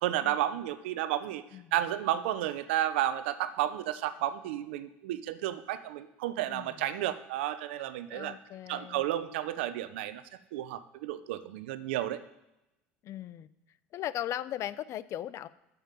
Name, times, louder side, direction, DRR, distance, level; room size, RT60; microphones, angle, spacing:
voice 1, 0.0-1.4 1.7-8.4 8.7-10.2 10.5-12.2, right 12 dB, 85° right, 12 dB, 0.8 m, -32 dB
voice 2, 8.1-9.0 13.0-13.5 13.9-15.5, left 12 dB, 55° left, 16 dB, 0.6 m, -37 dB
8.9 x 7.3 x 7.4 m, 0.92 s
hypercardioid pair, 80°, 6 cm